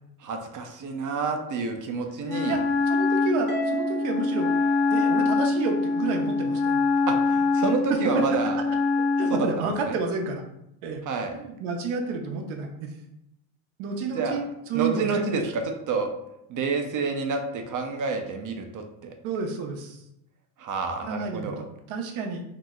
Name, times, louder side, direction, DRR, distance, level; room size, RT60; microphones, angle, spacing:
voice 1, 0.2-2.6 7.1-8.6 9.3-10.0 11.0-11.3 14.1-14.4 14.7-16.1 16.5-19.1 20.6-21.6, right 4 dB, 40° right, 4 dB, 0.6 m, -29 dB
Wind instrument woodwind instrument, 2.3-9.5, left 4 dB, 65° left, 0.7 m, -24 dB
voice 2, 2.5-4.5 4.9-6.8 8.1-8.2 9.2-10.4 10.8-11.0 11.3-12.9 13.8-15.5 19.2-20.0 21.1-22.4, right 4 dB, 70° right, 3 dB, 0.8 m, -30 dB
Harp, 3.5-5.9, right 1 dB, 20° left, 0.6 m, -35 dB
2.9 x 2.0 x 3.5 m, 0.81 s
cardioid pair, 100°, 50 cm